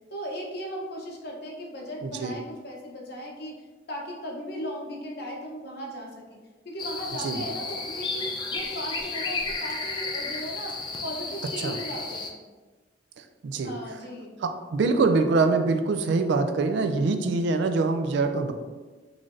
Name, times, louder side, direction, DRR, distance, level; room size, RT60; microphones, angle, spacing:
voice 1, 0.1-6.2 6.6-12.4 13.6-14.3, equal, 60° left, -2 dB, 0.7 m, -37 dB
voice 2, 2.0-2.3 7.2-7.4 11.6-11.7 13.4-13.7 14.4-18.5, right 3 dB, 70° right, 7 dB, 0.3 m, -24 dB
sound 1, 6.8-12.3, left 3 dB, 25° left, 0.4 m, -33 dB
3.8 x 3.2 x 2.5 m, 1.3 s
head